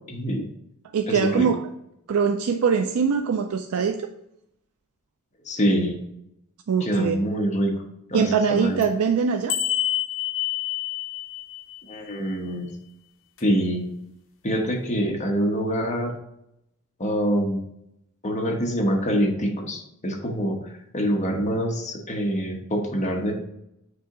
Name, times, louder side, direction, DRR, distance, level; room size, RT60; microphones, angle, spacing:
voice 1, 0.1-0.5 1.1-1.5 5.4-6.0 6.8-7.7 8.1-8.8 11.9-12.7 13.4-13.8 14.4-16.1 17.0-17.6 18.2-23.3, equal, 35° left, 0 dB, 1.1 m, -25 dB
voice 2, 0.9-1.6 2.1-4.1 6.7-7.2 8.1-9.6, right 6 dB, 75° right, 6 dB, 0.4 m, -22 dB
sound 1, 8.8-8.9 9.5-12.1 13.4-13.5, left 12 dB, 65° left, 0.8 m, -28 dB
6.8 x 2.8 x 4.9 m, 0.80 s
head